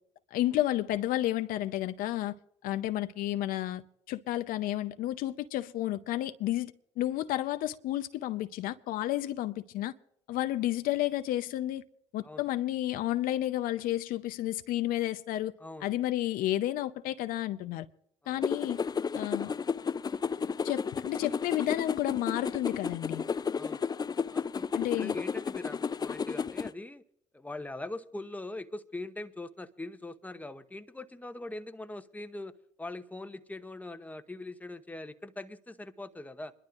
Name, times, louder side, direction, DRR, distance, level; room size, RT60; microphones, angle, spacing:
voice 1, 0.3-2.4 2.6-9.9 10.3-11.8 12.1-15.5 15.8-17.9 18.3-18.8 19.1-19.5 20.6-23.2 24.7-25.1, left 14 dB, 70° left, 0.7 m, -31 dB
voice 2, 15.6-15.9 18.2-18.4 23.5-23.8 24.3-24.7 25.0-27.0 27.3-36.5, left 2 dB, 10° left, 1.0 m, -42 dB
sound 1, 18.4-26.7, left 5 dB, 25° left, 0.4 m, -33 dB
27.0 x 12.0 x 2.5 m
hypercardioid pair, 60°, 15 cm